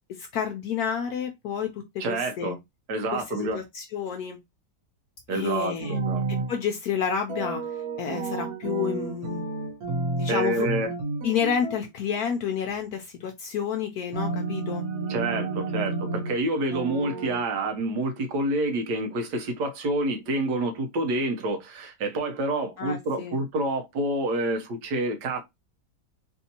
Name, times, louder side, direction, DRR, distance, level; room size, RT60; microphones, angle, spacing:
voice 1, 0.2-2.5 3.1-3.2 3.5-4.4 5.3-6.0 6.3-7.6 8.0-9.4 10.2-10.7 11.2-14.8 22.8-23.4, left 7 dB, 70° left, 1.0 m, -30 dB
voice 2, 2.0-2.6 2.9-3.6 5.3-6.2 10.3-10.9 15.1-25.4, right 2 dB, 80° right, 1.4 m, -28 dB
sound 1, 5.8-6.5 7.3-10.4 10.6-11.8 14.1-16.4 16.7-17.4, right 3 dB, 65° right, 1.3 m, -31 dB
3.5 x 2.6 x 2.7 m
omnidirectional pair, 1.8 m